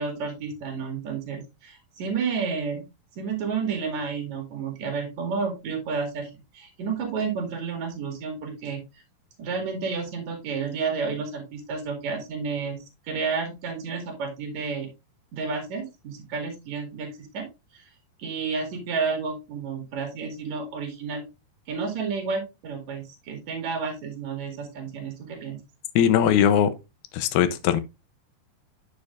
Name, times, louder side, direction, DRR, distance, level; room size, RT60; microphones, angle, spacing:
voice 1, 0.0-2.8 3.2-8.8 9.4-14.9 15.3-17.5 17.7-17.8 18.2-21.2 21.7-25.6, right 5 dB, 55° right, 3.2 m, -31 dB
voice 2, 26.0-26.7 27.1-27.8, left 9 dB, 85° left, 2.7 m, -20 dB
9.4 x 6.9 x 2.5 m
omnidirectional pair, 4.3 m